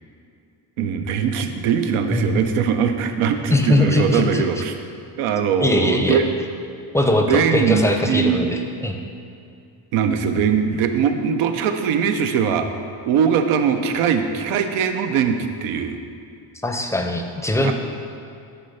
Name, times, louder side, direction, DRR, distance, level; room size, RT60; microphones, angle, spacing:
voice 1, 0.8-4.7 5.2-6.3 7.3-8.5 9.9-12.7 13.0-16.0 17.6-17.7, right 7 dB, 85° right, 7 dB, 0.7 m, -21 dB
voice 2, 2.1-2.4 3.5-4.6 5.6-6.2 6.9-9.0 16.6-17.7, left 1 dB, 5° left, 3 dB, 0.5 m, -21 dB
9.9 x 3.3 x 5.5 m, 2.5 s
cardioid pair, 105°, 50 cm